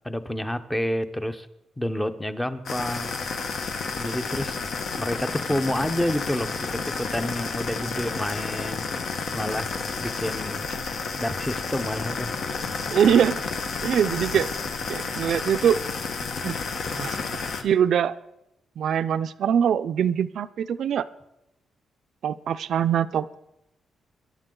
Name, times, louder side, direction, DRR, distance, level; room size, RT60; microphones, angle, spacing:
voice 1, 0.0-1.5 1.8-3.2 3.9-4.6 5.0-8.8 9.3-10.7 11.2-12.3, left 1 dB, 5° left, 10 dB, 0.8 m, -29 dB
sound 1, 2.7-17.6, left 4 dB, 60° left, 1.4 m, -31 dB
voice 2, 12.9-13.4 13.8-14.5 14.9-15.8 16.4-16.6 16.9-17.2 17.6-18.2 18.8-21.1 22.2-23.4, right 8 dB, 65° right, 13 dB, 0.5 m, -23 dB
22.5 x 11.5 x 3.8 m, 0.86 s
cardioid pair, 135°, 0 cm